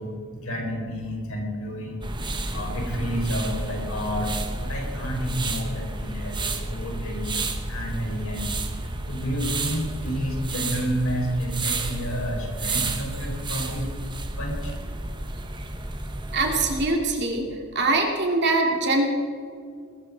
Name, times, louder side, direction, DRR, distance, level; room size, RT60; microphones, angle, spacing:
voice 1, 0.0-8.8 9.1-13.9 14.4-14.8, equal, 70° left, 0 dB, 4.6 m, -30 dB
sound 1, 2.0-16.9, right 2 dB, 20° right, 1.1 m, -31 dB
voice 2, 16.3-17.5 17.7-19.1, right 2 dB, 50° right, 1 dB, 2.5 m, -23 dB
21.0 x 14.0 x 4.1 m, 2.3 s
head